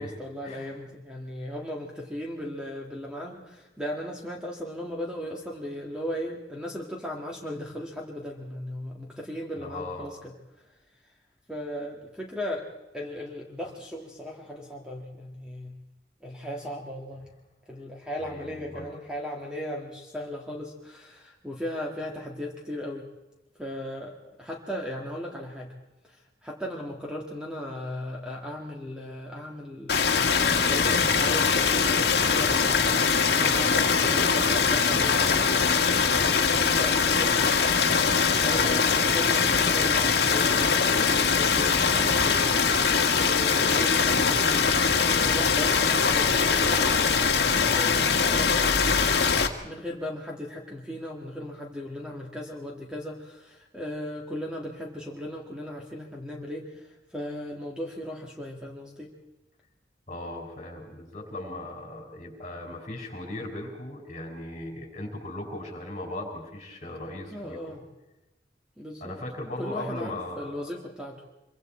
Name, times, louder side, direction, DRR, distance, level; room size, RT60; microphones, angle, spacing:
voice 1, 0.0-10.8 11.0-11.1 11.5-12.7 12.9-15.8 16.2-17.2 17.7-23.1 23.6-25.7 26.0-48.7 49.6-59.1 67.3-67.8 68.8-69.2 69.6-71.2, equal, 5° right, -1 dB, 1.9 m, -37 dB
voice 2, 9.6-10.1 18.2-18.9 60.1-67.6 69.0-70.7, left 1 dB, 35° left, 2 dB, 5.0 m, -38 dB
sound 1, 29.9-49.5, left 5 dB, 60° left, 1.6 m, -22 dB
26.0 x 24.0 x 4.4 m, 1.0 s
head